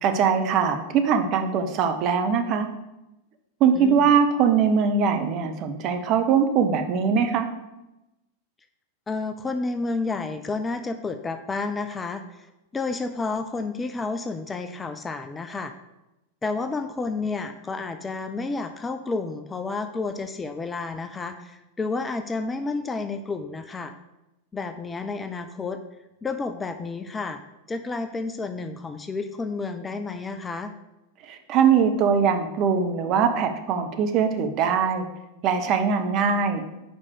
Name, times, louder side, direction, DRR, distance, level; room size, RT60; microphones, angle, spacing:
voice 1, 0.0-2.7 3.6-7.5 31.3-35.1 35.4-36.6, right 6 dB, 40° right, 6 dB, 0.8 m, -22 dB
voice 2, 3.7-4.1 9.1-15.7 16.4-23.9 24.5-25.8 26.2-27.4 27.7-30.7, left 3 dB, 15° left, 8 dB, 0.5 m, -30 dB
5.2 x 5.2 x 6.5 m, 0.94 s
figure-of-eight pair, 90°, 0 cm